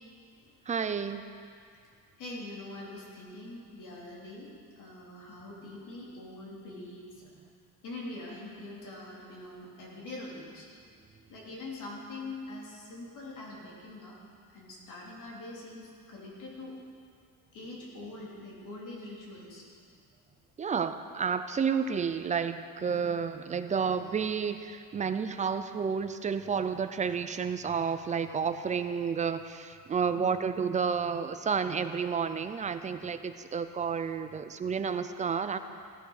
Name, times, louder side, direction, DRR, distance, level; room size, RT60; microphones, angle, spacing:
voice 1, 0.7-1.2 20.6-35.6, right 6 dB, 20° right, 10 dB, 0.4 m, -31 dB
voice 2, 2.2-4.5 4.8-7.1 7.8-10.7 11.3-14.2 14.5-16.8 17.5-19.7 22.9-23.1 30.1-30.6 33.2-33.3, left 2 dB, 55° left, -4 dB, 3.5 m, -43 dB
16.0 x 9.6 x 6.4 m, 2.3 s
cardioid pair, 155°, 38 cm